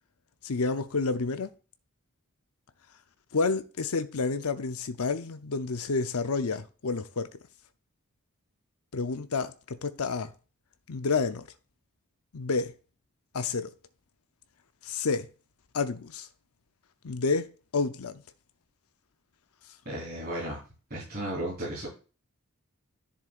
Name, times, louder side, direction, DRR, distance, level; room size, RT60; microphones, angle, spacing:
voice 1, 0.4-1.5 3.3-7.3 8.9-10.3 10.9-11.5 12.3-12.7 13.3-13.7 14.8-15.3 15.7-16.3 17.0-18.2, left 4 dB, 85° left, 0.7 m, -29 dB
voice 2, 19.9-20.6 20.9-21.9, right 1 dB, 45° right, 4.0 m, -34 dB
10.5 x 6.8 x 2.5 m
head